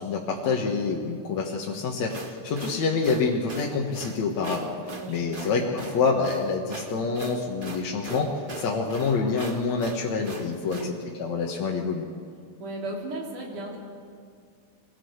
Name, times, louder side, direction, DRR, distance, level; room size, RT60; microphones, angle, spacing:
voice 1, 0.0-4.7 5.1-10.9 11.2-12.1, left 4 dB, 65° left, -2 dB, 2.7 m, -27 dB
sound 1, 1.9-10.9, right 2 dB, 40° right, 0.7 m, -40 dB
voice 2, 4.8-5.5 10.6-11.0 12.6-13.8, right 2 dB, 85° right, -1 dB, 4.9 m, -36 dB
23.5 x 16.5 x 8.1 m, 2.2 s
omnidirectional pair, 3.5 m